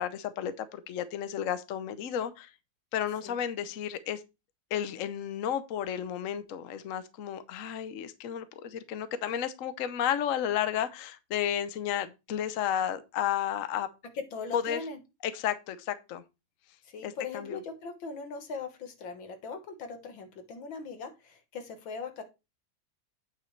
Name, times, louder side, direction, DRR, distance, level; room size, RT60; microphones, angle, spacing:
voice 1, 0.0-2.5 2.9-4.2 4.7-13.9 14.5-14.8 15.2-16.2 17.0-17.6, left 9 dB, 55° left, 1.0 m, -32 dB
voice 2, 14.2-15.0 16.8-22.2, left 4 dB, 85° left, 2.2 m, -40 dB
8.8 x 7.5 x 3.3 m
omnidirectional pair, 2.1 m